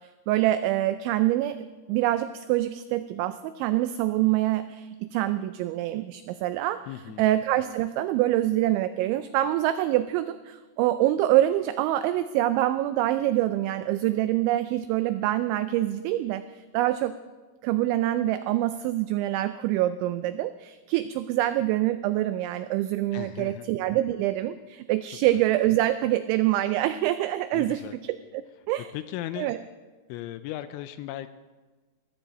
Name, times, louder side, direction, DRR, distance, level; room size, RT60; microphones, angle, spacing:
voice 1, 0.3-1.6 1.9-6.8 7.2-17.1 17.6-27.8 28.3-28.4 28.7-28.9 29.4-29.6, right 14 dB, 90° right, 11 dB, 2.6 m, -25 dB
voice 2, 6.9-7.3 23.1-23.7 27.5-28.0 28.9-29.5 30.1-31.3, left 13 dB, 85° left, 11 dB, 2.8 m, -36 dB
18.5 x 14.5 x 4.1 m, 1.3 s
omnidirectional pair, 5.9 m